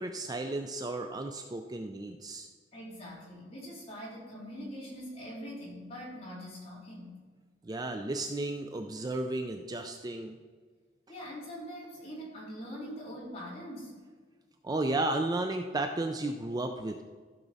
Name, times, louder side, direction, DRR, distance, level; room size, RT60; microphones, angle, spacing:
voice 1, 0.0-2.5 7.6-10.4 14.6-17.0, right 2 dB, 20° right, 5 dB, 0.4 m, -33 dB
voice 2, 2.7-7.2 11.1-14.0, equal, 30° left, -5 dB, 3.0 m, -43 dB
15.0 x 6.0 x 4.0 m, 1.5 s
head